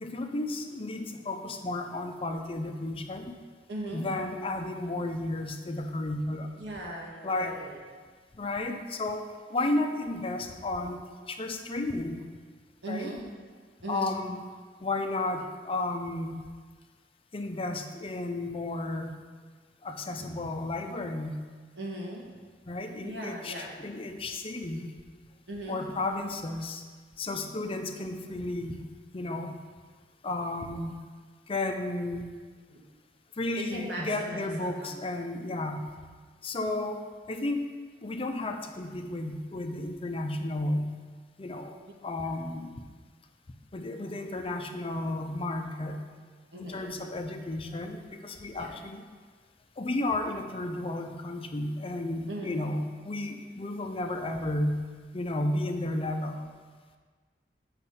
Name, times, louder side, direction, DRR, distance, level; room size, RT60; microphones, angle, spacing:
voice 1, 0.0-3.3 3.9-6.5 7.2-7.5 8.4-12.2 12.9-13.1 13.9-14.4 14.8-16.4 17.3-19.2 19.8-21.4 22.7-24.9 25.7-26.8 27.2-28.9 29.1-29.6 30.2-30.9 31.5-32.2 33.4-35.9 36.4-37.6 38.0-41.0 41.4-41.8 42.0-42.7 43.7-46.0 46.6-49.0 49.8-54.8 55.1-56.4, left 2 dB, 35° left, 5 dB, 0.6 m, -33 dB
voice 2, 3.7-4.1 6.6-7.8 12.8-13.3 13.8-14.2 21.8-22.3 23.0-23.7 25.5-25.9 32.7-32.8 33.7-34.9 42.3-42.5 46.5-47.0 48.5-48.7 52.3-52.6, right 1 dB, 85° right, -2 dB, 1.7 m, -39 dB
8.3 x 5.8 x 4.2 m, 1.5 s
head